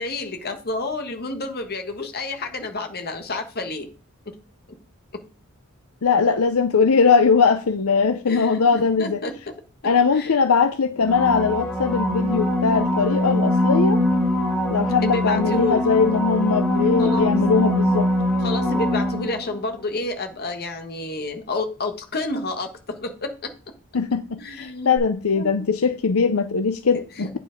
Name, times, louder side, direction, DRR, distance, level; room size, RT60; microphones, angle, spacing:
voice 1, 0.0-3.9 4.3-4.4 5.1-5.2 8.3-9.5 10.1-10.3 15.0-15.9 17.0-17.3 18.4-23.5 24.4-25.0 25.3-25.6 26.3-26.4 26.9-27.3, left 2 dB, 45° left, 1.4 m, -30 dB
voice 2, 6.0-9.2 9.8-14.0 14.7-18.1 23.9-27.4, left 5 dB, 75° left, 0.6 m, -20 dB
sound 1, 11.0-19.6 25.0-25.1, left 1 dB, ahead, 4.5 m, -22 dB
9.0 x 5.0 x 5.1 m
head